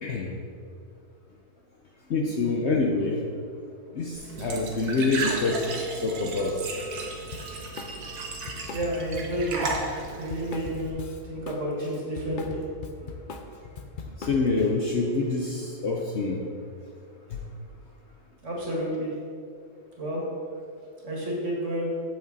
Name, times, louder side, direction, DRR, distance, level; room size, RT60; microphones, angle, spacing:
voice 1, 0.0-0.3 2.1-3.2 3.9-6.6 14.2-16.5 17.3-17.4, left 3 dB, 55° left, 0 dB, 0.9 m, -26 dB
Glass / Trickle dribble / Fill (with liquid), 4.1-10.9, right 3 dB, 75° right, 1.7 m, -35 dB
Drum kit, 7.3-7.9 8.2-11.6 11.9-14.7, left 4 dB, 80° left, 0.4 m, -39 dB
voice 2, 8.7-9.8 10.2-11.0 11.3-12.6 18.4-19.1 20.0-20.2 21.0-21.9, equal, 50° right, -3 dB, 2.2 m, -30 dB
8.1 x 7.8 x 4.1 m, 2.4 s
omnidirectional pair, 1.7 m